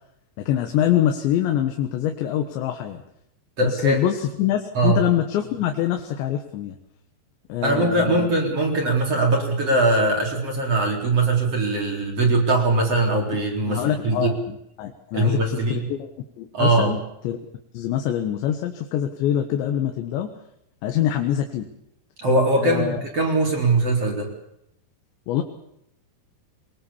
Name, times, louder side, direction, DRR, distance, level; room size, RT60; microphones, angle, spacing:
voice 1, 0.4-3.0 3.6-6.8 7.5-8.3 13.6-16.1 16.4-17.4 17.7-20.3 20.8-21.7 22.6-23.0 25.3-25.4, left 11 dB, 85° left, 4 dB, 3.7 m, -24 dB
voice 2, 3.6-4.0 4.7-5.0 7.6-14.3 15.1-15.8 16.5-16.9 22.2-24.3, right 2 dB, 35° right, 0 dB, 4.6 m, -21 dB
23.0 x 21.5 x 7.2 m, 0.77 s
omnidirectional pair, 5.0 m